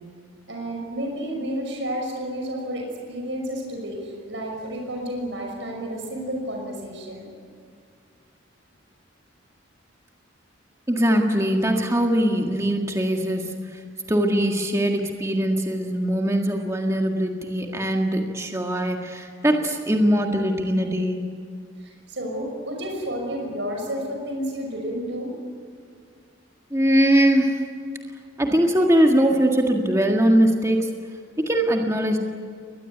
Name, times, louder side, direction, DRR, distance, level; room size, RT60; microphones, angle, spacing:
voice 1, 0.5-7.3 21.8-25.3, equal, 70° right, 1 dB, 5.9 m, -31 dB
voice 2, 10.9-13.8 14.1-21.2 26.7-27.6 28.4-30.9 31.4-32.2, equal, 15° right, 2 dB, 1.8 m, -21 dB
23.0 x 20.0 x 9.5 m, 2.2 s
head